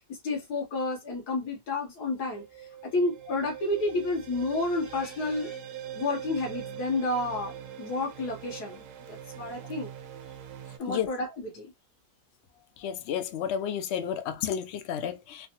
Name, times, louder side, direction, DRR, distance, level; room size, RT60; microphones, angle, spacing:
voice 1, 0.2-2.4 2.9-5.6 5.9-9.9 10.8-11.7, left 2 dB, 85° left, 1.6 m, -30 dB
sound 1, 2.1-10.8, right 10 dB, 65° right, 0.9 m, -42 dB
voice 2, 12.8-15.5, left 9 dB, 70° left, 0.6 m, -31 dB
3.3 x 2.1 x 2.8 m
omnidirectional pair, 1.6 m